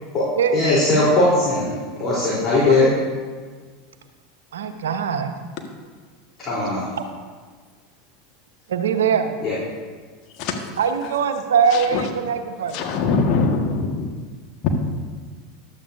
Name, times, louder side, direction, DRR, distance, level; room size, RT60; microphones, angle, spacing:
voice 1, 0.5-2.9 6.5-6.9 9.4-9.6, left 2 dB, 35° left, -8 dB, 3.8 m, -19 dB
voice 2, 2.6-2.9 4.5-5.4 8.7-9.3 10.8-12.8, right 7 dB, 75° right, 7 dB, 0.9 m, -22 dB
voice 3, 11.7-12.1 12.7-14.1 14.6-14.7, left 4 dB, 50° left, 3 dB, 1.6 m, -22 dB
14.5 x 11.5 x 2.7 m, 1.5 s
figure-of-eight pair, 85°, 0 cm